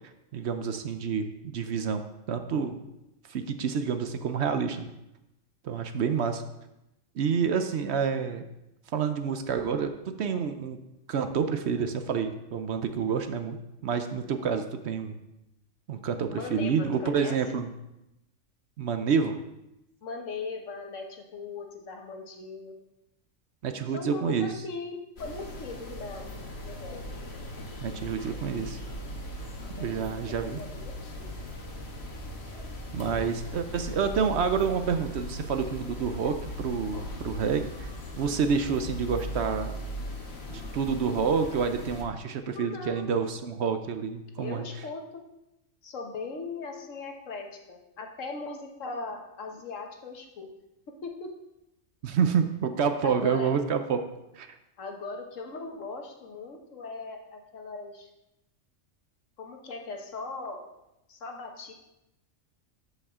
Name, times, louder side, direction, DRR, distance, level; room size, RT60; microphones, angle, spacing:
voice 1, 0.3-2.0 2.3-2.8 3.3-4.9 5.6-6.4 7.2-8.4 8.9-10.8 11.1-13.6 13.8-15.2 15.9-17.7 18.8-19.4 23.6-24.5 27.8-28.8 29.8-30.6 32.9-37.9 38.1-39.7 40.5-44.6 52.0-54.0 54.4-54.5, right 6 dB, 60° right, 8 dB, 0.9 m, -28 dB
voice 2, 16.3-17.4 20.0-22.7 23.9-26.3 26.6-27.0 28.3-28.4 29.6-31.3 42.5-43.1 44.4-45.2 45.8-50.5 51.0-51.3 53.0-53.5 54.8-58.1 59.4-60.7 61.1-61.7, left 4 dB, 75° left, 3 dB, 1.5 m, -39 dB
sound 1, 25.2-42.0, left 1 dB, 55° left, 1.4 m, -39 dB
13.5 x 5.5 x 3.6 m, 0.90 s
omnidirectional pair, 1.3 m